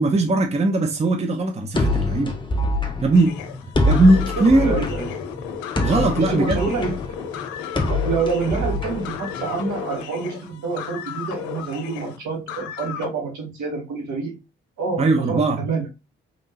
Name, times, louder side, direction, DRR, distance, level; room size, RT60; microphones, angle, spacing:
voice 1, 0.0-2.3 3.0-3.4 3.9-4.8 5.8-6.6 15.0-15.6, right 2 dB, 20° right, 0.7 m, -19 dB
sound 1, 1.7-9.7, left 2 dB, 15° left, 1.0 m, -25 dB
sound 2, 3.1-13.1, left 8 dB, 70° left, 0.6 m, -33 dB
voice 2, 4.4-5.1 6.1-7.2 7.8-14.4 14.8-15.9, right 4 dB, 65° right, 1.6 m, -27 dB
3.7 x 3.6 x 2.8 m
hypercardioid pair, 40°, 31 cm